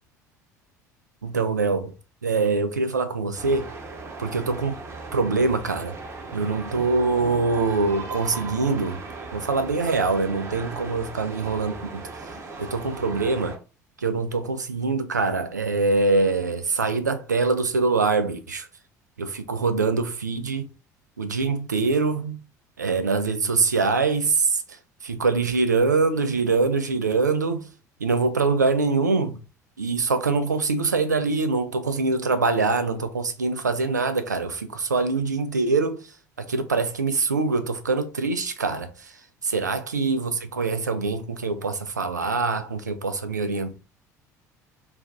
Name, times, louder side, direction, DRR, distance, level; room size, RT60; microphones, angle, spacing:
voice 1, 1.2-1.9 2.2-3.7 4.2-4.7 5.1-5.9 6.3-9.0 9.3-11.7 12.6-13.5 14.0-18.7 19.2-20.7 21.2-22.4 22.8-24.6 25.0-27.7 28.0-29.4 29.8-36.0 36.5-38.9 39.4-43.8, right 4 dB, 85° right, 0.4 m, -24 dB
sound 1, 3.4-13.6, right 3 dB, 30° right, 0.8 m, -38 dB
2.4 x 2.2 x 3.5 m
figure-of-eight pair, 65°, 9 cm